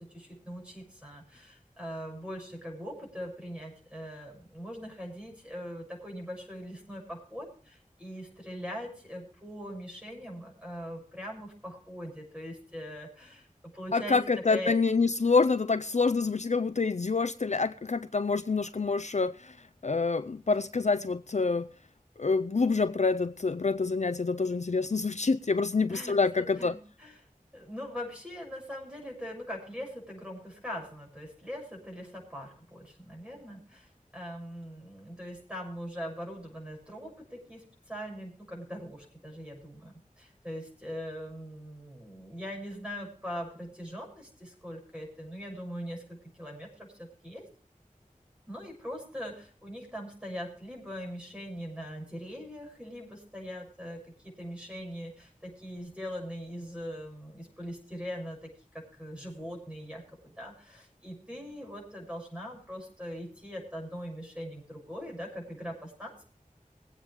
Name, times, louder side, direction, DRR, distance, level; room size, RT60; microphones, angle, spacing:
voice 1, 0.0-13.5 13.7-14.2 14.5-14.7 25.9-27.2 27.5-47.5 48.5-66.2, equal, 10° right, 6.8 m, -41 dB
voice 2, 13.9-19.5 19.8-21.7 22.2-26.8, left 4 dB, 55° left, 0.4 m, -27 dB
21.5 x 8.8 x 3.4 m
wide cardioid pair, 40°, 14 cm